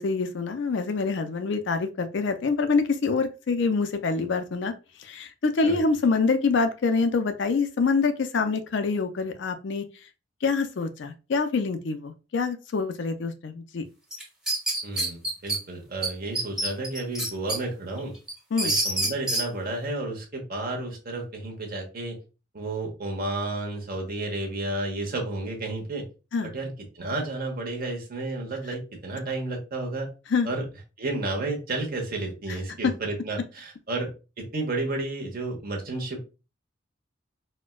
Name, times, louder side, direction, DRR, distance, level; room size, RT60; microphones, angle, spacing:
voice 1, 0.0-4.7 5.0-9.9 10.4-13.8 18.5-18.7 26.3-26.5 30.3-30.5 32.8-32.9, left 4 dB, 65° left, 0.4 m, -25 dB
sound 1, 14.1-15.6 16.0-16.1 16.4-17.6 18.0-19.4, right 1 dB, 5° right, 0.9 m, -26 dB
voice 2, 14.8-18.1 18.6-22.2 22.5-26.1 26.4-26.7 26.9-30.1 30.4-30.6 31.0-34.1 34.4-36.2, right 2 dB, 50° right, 0.9 m, -31 dB
4.2 x 2.2 x 2.3 m
head